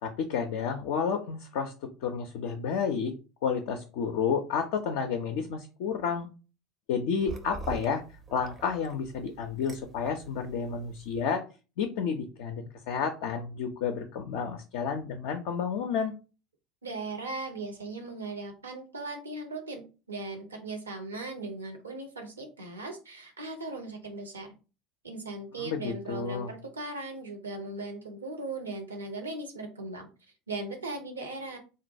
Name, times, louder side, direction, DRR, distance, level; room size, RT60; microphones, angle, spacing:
voice 1, 0.0-3.1 3.4-6.3 6.9-8.0 8.3-11.4 11.8-16.1 25.6-26.5, left 6 dB, 60° left, 5 dB, 0.4 m, -31 dB
sound 1, 7.2-11.2, right 3 dB, 25° right, 0.5 m, -44 dB
voice 2, 16.8-19.8 20.1-24.5 25.0-30.1 30.5-31.6, right 2 dB, 80° right, 5 dB, 0.6 m, -38 dB
3.7 x 2.2 x 2.6 m, 0.33 s
figure-of-eight pair, 70°, 0 cm